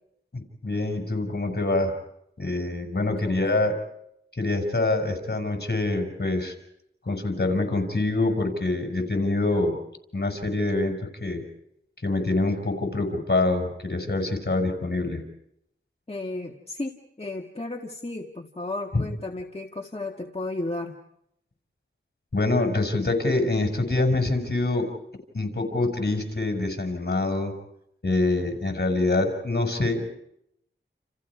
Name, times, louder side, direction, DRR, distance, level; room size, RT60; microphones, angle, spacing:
voice 1, 0.3-2.0 2.4-3.8 4.3-6.5 7.1-9.8 10.1-11.4 12.0-15.2 18.9-19.0 22.3-24.9 25.3-27.5 28.0-30.1, left 2 dB, 55° left, 4 dB, 6.0 m, -25 dB
voice 2, 3.0-3.5 16.1-20.9, left 2 dB, 30° left, 1 dB, 1.9 m, -34 dB
29.5 x 29.5 x 4.9 m, 0.77 s
wide cardioid pair, 65°, 21 cm